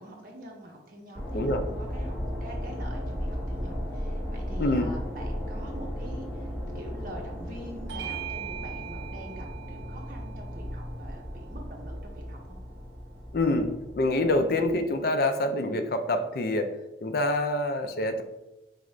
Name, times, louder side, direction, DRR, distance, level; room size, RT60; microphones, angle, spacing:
voice 1, 0.0-2.2 2.4-6.5 6.7-12.6, right 1 dB, 50° right, -1 dB, 0.9 m, -44 dB
sound 1, 1.1-14.7, equal, 5° left, 1.0 m, -36 dB
voice 2, 1.3-1.6 4.6-4.9 13.3-16.7 17.0-18.2, left 1 dB, 55° left, 7 dB, 0.4 m, -26 dB
Bell / Doorbell, 7.9-12.7, right 11 dB, 80° right, 0.3 m, -42 dB
4.7 x 2.4 x 3.1 m, 1.0 s
head